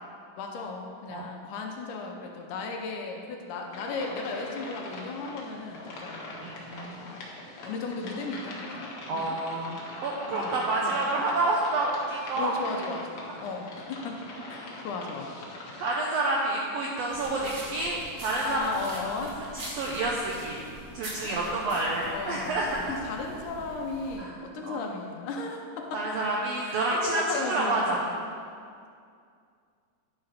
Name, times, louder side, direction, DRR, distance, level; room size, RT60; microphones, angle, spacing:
voice 1, 0.4-6.4 6.8-7.2 7.6-9.4 10.3-11.2 12.4-14.2 14.5-15.3 18.4-19.4 21.2-26.1 26.6-28.2, left 4 dB, 80° left, 2 dB, 2.2 m, -36 dB
sound 1, 3.7-16.0, left 2 dB, 60° left, 1.7 m, -43 dB
voice 2, 6.4-7.1 9.1-12.5 15.8-18.6 19.8-20.6 20.9-22.9 24.2-24.3 24.7-24.8 25.9-28.0, right 2 dB, 85° right, -3 dB, 1.5 m, -29 dB
sound 2, 17.1-24.2, right 1 dB, 60° right, 0.9 m, -43 dB
10.5 x 3.9 x 5.6 m, 2.3 s
omnidirectional pair, 3.7 m